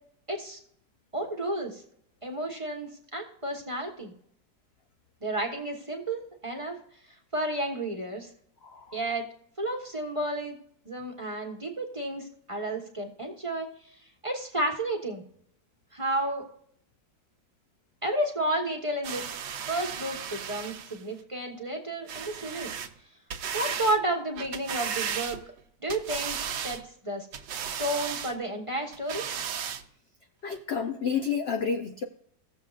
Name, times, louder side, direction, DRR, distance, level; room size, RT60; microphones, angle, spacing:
voice 1, 0.3-0.6 1.1-1.8 2.2-4.1 5.2-6.8 7.3-8.3 8.9-9.3 9.6-10.6 10.8-13.7 14.2-15.2 15.9-16.4 18.0-19.3 19.7-22.7 23.5-25.4 25.8-27.3 27.8-29.2, right 1 dB, 20° right, 1 dB, 1.1 m, -31 dB
voice 2, 8.6-9.0 30.4-32.0, left 6 dB, 70° left, 5 dB, 0.6 m, -30 dB
sound 1, 19.0-21.0 22.1-22.9 23.3-24.0 24.4-25.6 25.9-26.8 27.3-28.4 28.9-29.8 30.5-30.6, right 7 dB, 80° right, 1.4 m, -35 dB
16.5 x 7.1 x 2.4 m, 0.66 s
omnidirectional pair, 1.9 m